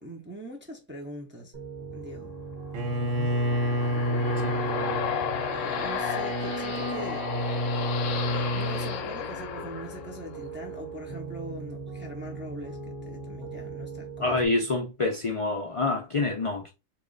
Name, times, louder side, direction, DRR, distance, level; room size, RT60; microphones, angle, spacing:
voice 1, 0.0-1.6 1.9-2.3 5.5-7.3 8.3-14.4, equal, 15° right, 0.4 m, -42 dB
Piano, 1.5-14.5, right 3 dB, 45° right, 1.3 m, -41 dB
Bowed string instrument, 2.7-9.0, equal, 70° right, 1.1 m, -29 dB
sound 1, 2.9-10.5, left 9 dB, 70° left, 0.9 m, -34 dB
voice 2, 14.2-16.7, left 3 dB, 55° left, 0.3 m, -27 dB
3.1 x 2.4 x 3.8 m
omnidirectional pair, 1.4 m